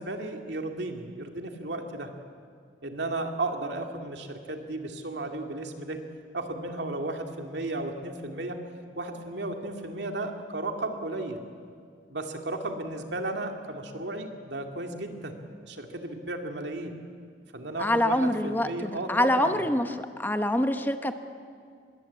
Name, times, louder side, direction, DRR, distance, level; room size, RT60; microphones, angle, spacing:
voice 1, 0.0-2.1 2.8-6.0 6.3-8.6 9.0-11.4 12.1-15.3 15.6-17.0 17.5-19.6, right 2 dB, 70° right, 4 dB, 2.5 m, -34 dB
voice 2, 17.8-19.9 20.2-21.2, left 1 dB, 10° left, 8 dB, 0.9 m, -25 dB
25.5 x 22.0 x 8.7 m, 2.2 s
head